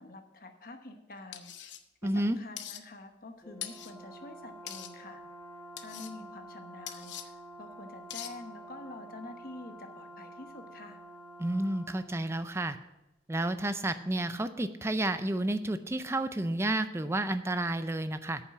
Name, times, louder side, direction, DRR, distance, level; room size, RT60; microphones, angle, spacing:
voice 1, 0.0-1.7 2.0-5.2 5.8-11.0, left 2 dB, 50° left, 6 dB, 1.0 m, -47 dB
sound 1, 1.3-1.8 2.6-2.8 3.6-3.9 4.7-4.9 5.8-6.1 6.9-7.3 8.1-8.3, left 11 dB, 75° left, 0.7 m, -42 dB
voice 2, 2.0-2.4 11.4-12.8 13.3-18.4, right 1 dB, 15° right, 11 dB, 0.4 m, -31 dB
Brass instrument, 3.4-12.1, right 1 dB, 15° left, 1.1 m, -49 dB
9.1 x 7.2 x 5.8 m, 0.97 s
head